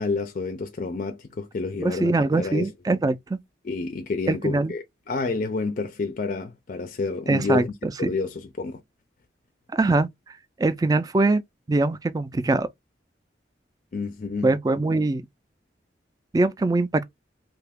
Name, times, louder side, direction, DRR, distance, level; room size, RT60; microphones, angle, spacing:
voice 1, 0.0-2.7 3.6-7.7 8.0-8.8 13.9-14.5, left 4 dB, 45° left, 0.4 m, -29 dB
voice 2, 1.8-3.4 4.3-4.7 7.3-8.1 9.7-10.1 10.6-11.4 11.7-12.7 14.4-15.2 16.3-17.0, right 2 dB, 20° right, 0.3 m, -22 dB
2.8 x 2.3 x 3.4 m
head